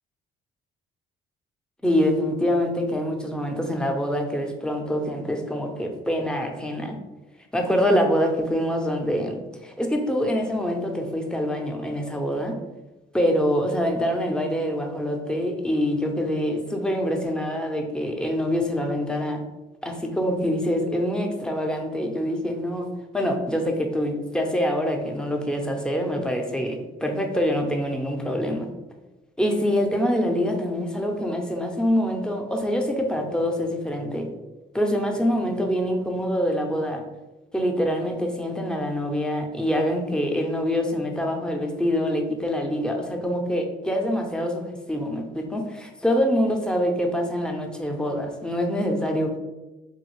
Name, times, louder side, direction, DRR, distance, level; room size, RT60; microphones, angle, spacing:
voice 1, 1.8-7.0 7.5-12.6 13.1-19.4 19.8-28.7 29.4-34.3 34.7-37.0 37.5-49.4, equal, 5° left, 3 dB, 0.5 m, -25 dB
3.5 x 2.3 x 3.0 m, 1.1 s
cardioid pair, 90°, 20 cm